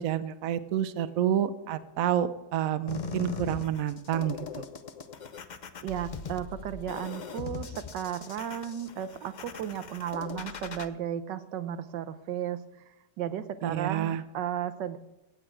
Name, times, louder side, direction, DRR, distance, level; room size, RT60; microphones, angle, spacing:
voice 1, 0.0-4.4 13.6-14.2, right 10 dB, 60° right, 12 dB, 1.0 m, -29 dB
sound 1, 2.9-10.9, left 5 dB, 80° left, 0.4 m, -40 dB
voice 2, 5.8-12.7 13.2-15.0, right 10 dB, 85° right, 12 dB, 1.5 m, -34 dB
16.5 x 8.4 x 4.6 m, 1.0 s
omnidirectional pair, 1.9 m